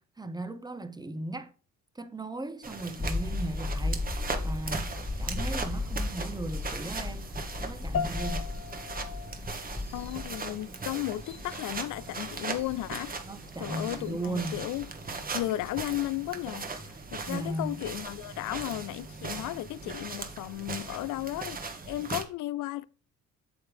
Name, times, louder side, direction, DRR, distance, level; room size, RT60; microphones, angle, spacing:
voice 1, 0.0-1.5 1.9-7.3 7.6-8.5 13.2-14.7 17.3-17.8, right 2 dB, 15° right, 0.8 m, -37 dB
sound 1, 2.6-22.2, right 4 dB, 30° right, 1.3 m, -39 dB
sound 2, 3.0-15.4, left 2 dB, 20° left, 1.6 m, -36 dB
sound 3, 7.9-17.5, left 7 dB, 50° left, 0.8 m, -42 dB
voice 2, 9.9-13.1 13.6-14.9 15.3-16.7 17.1-22.9, left 15 dB, 80° left, 0.5 m, -34 dB
8.7 x 6.6 x 3.5 m
cardioid pair, 90°, 30 cm